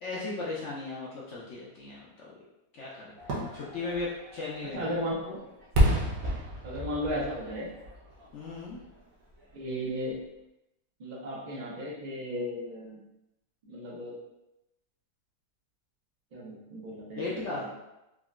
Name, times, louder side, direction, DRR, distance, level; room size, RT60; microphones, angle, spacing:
voice 1, 0.0-2.3 2.7-3.1 3.5-4.9 8.3-8.8 17.2-17.7, left 3 dB, 70° left, -5 dB, 0.7 m, -36 dB
Fireworks, 3.2-9.0 9.4-9.5, equal, 60° right, 1.0 m, -31 dB
voice 2, 4.7-5.4 6.6-7.7 9.5-10.2 11.0-13.0 13.6-14.2 16.3-17.7, equal, 90° right, -5 dB, 0.4 m, -35 dB
3.7 x 2.1 x 2.4 m, 0.91 s
omnidirectional pair, 1.8 m